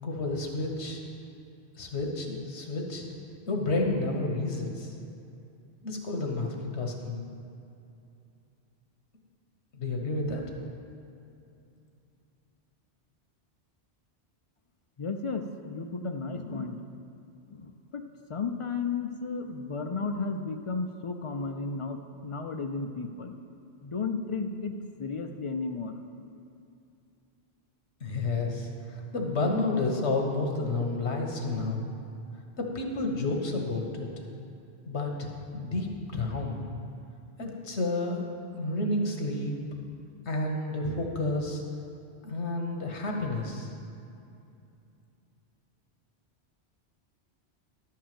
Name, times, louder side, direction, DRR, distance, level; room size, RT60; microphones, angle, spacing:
voice 1, 0.0-1.0 1.8-3.1 3.5-4.9 5.8-7.3 9.7-10.4 28.0-31.8 32.6-34.1 34.9-36.6 37.4-38.2 38.5-39.6 40.3-41.6 42.2-43.7, left 2 dB, 85° left, 2 dB, 1.5 m, -30 dB
voice 2, 15.0-16.9 17.5-18.0 18.3-23.4 23.8-26.0, left 4 dB, 50° left, 6 dB, 0.3 m, -33 dB
11.5 x 4.6 x 7.5 m, 2.6 s
omnidirectional pair, 1.1 m